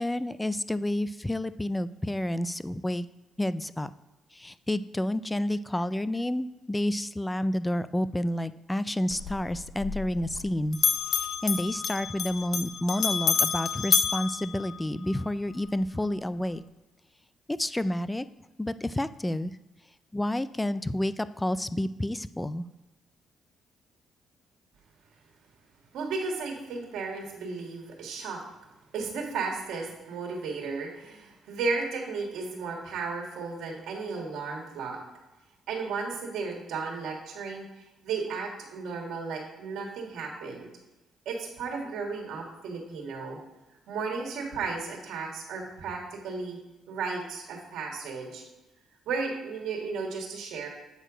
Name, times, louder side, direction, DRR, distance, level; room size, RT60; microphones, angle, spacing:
voice 1, 0.0-3.1 3.4-3.9 4.3-10.8 11.1-16.6 17.5-18.3 18.6-19.5 20.1-22.7, left 1 dB, 10° left, 15 dB, 0.3 m, -30 dB
Bell, 9.1-10.5 10.7-15.2, left 7 dB, 60° left, 0.7 m, -29 dB
voice 2, 25.9-28.4 28.9-35.0 35.7-37.6 38.0-40.7 41.2-43.4 43.9-46.6 46.9-48.4 49.0-50.7, right 4 dB, 80° right, 1 dB, 1.8 m, -34 dB
8.1 x 4.5 x 5.0 m, 1.1 s
cardioid pair, 90°, 0 cm